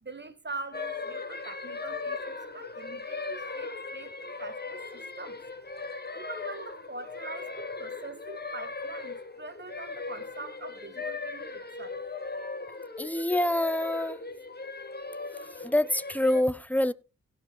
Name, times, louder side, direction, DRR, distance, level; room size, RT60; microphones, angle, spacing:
voice 1, 0.0-5.4 6.1-12.0, right 3 dB, 35° right, 1.8 m, -43 dB
sound 1, 0.7-16.4, left 4 dB, 30° left, 1.6 m, -38 dB
voice 2, 12.4-14.2 15.6-16.9, left 1 dB, 5° left, 0.6 m, -27 dB
16.0 x 5.8 x 4.0 m
cardioid pair, 50°, 31 cm